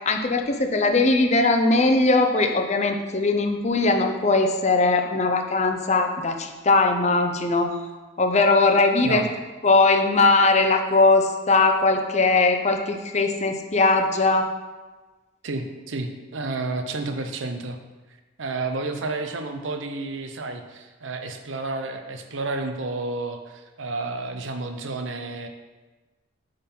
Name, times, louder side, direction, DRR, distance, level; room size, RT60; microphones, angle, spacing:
voice 1, 0.0-7.7 8.2-9.3 9.6-14.5, left 3 dB, 35° left, 5 dB, 0.6 m, -20 dB
voice 2, 9.0-9.3 15.4-17.8 18.4-25.5, right 3 dB, 75° right, 6 dB, 0.7 m, -31 dB
8.4 x 3.9 x 5.4 m, 1.2 s
head